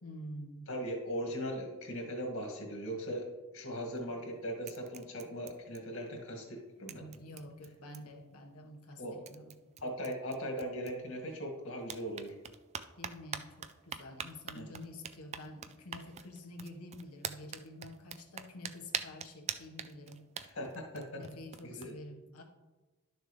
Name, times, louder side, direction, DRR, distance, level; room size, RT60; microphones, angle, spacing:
voice 1, 0.0-0.7 7.0-9.5 13.0-20.3 21.1-22.4, left 1 dB, 85° left, 2 dB, 1.4 m, -48 dB
voice 2, 0.7-3.2 3.5-7.0 9.0-9.2 9.8-12.3 14.5-14.7 20.4-21.0 21.6-21.9, equal, 65° left, 1 dB, 2.1 m, -39 dB
sound 1, 3.8-4.3 4.6-6.2 6.5-6.6 6.9-8.3 8.9-9.0 9.3-11.4 11.8-21.9, right 8 dB, 30° right, 0.3 m, -45 dB
12.0 x 6.5 x 3.3 m, 1.2 s
head